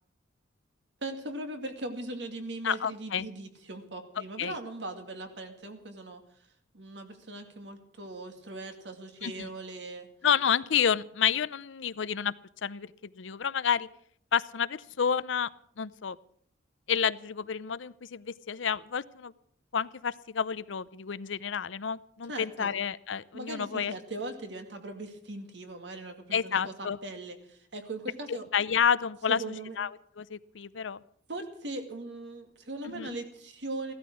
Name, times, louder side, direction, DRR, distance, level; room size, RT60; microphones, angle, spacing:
voice 1, 1.0-6.2 6.7-10.1 22.3-22.7 23.3-28.4 29.3-29.8 31.3-33.9, right 2 dB, 65° right, 6 dB, 2.2 m, -39 dB
voice 2, 2.6-3.3 4.4-4.6 9.2-9.5 10.2-12.3 12.6-13.9 14.3-15.5 15.8-16.2 16.9-19.3 19.7-24.0 26.3-27.0 28.3-29.4 29.8-31.0 32.8-33.1, left 7 dB, 80° left, 17 dB, 0.6 m, -30 dB
16.0 x 12.5 x 6.3 m, 0.64 s
head